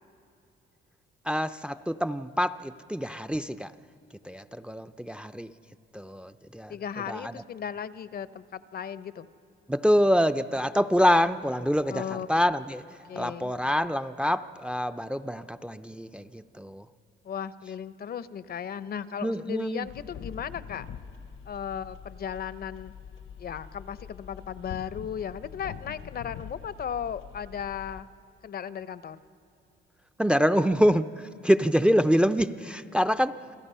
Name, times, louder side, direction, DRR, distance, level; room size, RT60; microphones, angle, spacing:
voice 1, 1.3-3.7 4.2-5.5 5.9-6.7 7.1-7.3 9.7-12.8 13.2-16.8 19.2-19.9 30.2-33.4, equal, 5° right, 12 dB, 0.5 m, -25 dB
voice 2, 6.7-9.3 11.9-12.4 13.1-13.5 17.2-20.9 21.5-22.9 23.4-28.1 28.4-29.2, left 8 dB, 50° left, 15 dB, 0.7 m, -36 dB
sound 1, 19.8-28.0, left 8 dB, 75° left, 1.0 m, -44 dB
28.0 x 17.5 x 5.6 m, 2.9 s
cardioid pair, 90°, 20 cm